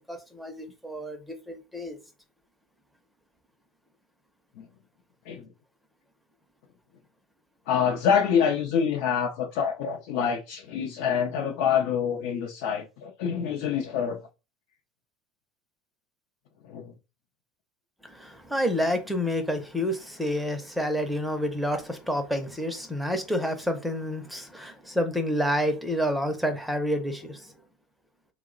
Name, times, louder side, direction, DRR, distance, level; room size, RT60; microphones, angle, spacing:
voice 1, 0.1-2.0 18.0-27.6, equal, ahead, 0.5 m, -29 dB
voice 2, 7.7-14.2 16.7-16.9, left 7 dB, 70° left, 0.5 m, -26 dB
2.9 x 2.0 x 3.7 m
cardioid pair, 155°, 3 cm